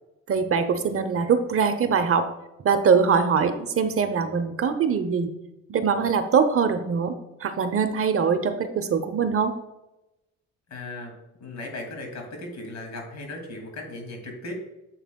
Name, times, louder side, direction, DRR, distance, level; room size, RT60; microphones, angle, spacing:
voice 1, 0.3-2.3 2.6-5.3 5.7-7.1 7.4-9.5, right 6 dB, 45° right, 8 dB, 0.8 m, -22 dB
voice 2, 10.7-14.5, left 2 dB, 65° left, 1 dB, 2.5 m, -37 dB
8.9 x 7.2 x 2.3 m, 0.93 s
cardioid pair, 90°, 30 cm